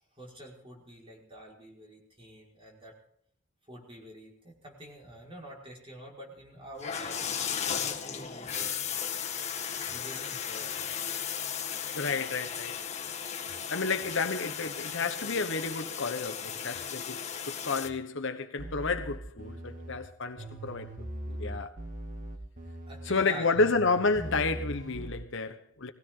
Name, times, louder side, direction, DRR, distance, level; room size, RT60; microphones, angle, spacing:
voice 1, 0.1-2.9 3.7-7.3 7.6-8.9 9.9-10.8 20.3-20.5 22.9-23.7, equal, 25° right, 5.2 m, -47 dB
sound 1, 6.8-17.9, left 8 dB, 35° left, 1.7 m, -35 dB
voice 2, 11.9-12.8 13.7-20.9 21.3-21.8 23.1-25.9, left 4 dB, 65° left, 1.1 m, -31 dB
sound 2, 18.6-20.0 20.4-23.2 23.6-25.1, right 1 dB, 40° right, 2.3 m, -40 dB
20.5 x 16.5 x 3.9 m
head